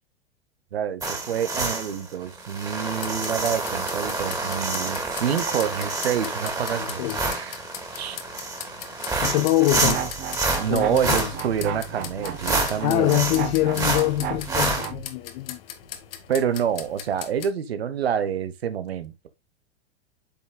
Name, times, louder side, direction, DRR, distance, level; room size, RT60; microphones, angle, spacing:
voice 1, 0.7-7.6 7.9-8.2 9.8-10.0 10.6-13.3 13.7-13.9 16.3-19.1, right 8 dB, 65° right, 1.1 m, -27 dB
sound 1, 1.0-14.9, right 2 dB, 10° right, 2.4 m, -28 dB
sound 2, 2.9-17.5, left 9 dB, 60° left, 1.3 m, -40 dB
voice 2, 6.7-7.4 9.2-10.0 10.7-11.3 12.8-15.6, left 16 dB, 40° left, 0.6 m, -24 dB
sound 3, 9.9-15.0, right 7 dB, 30° right, 1.5 m, -33 dB
8.5 x 6.5 x 2.3 m
figure-of-eight pair, 95°, 33 cm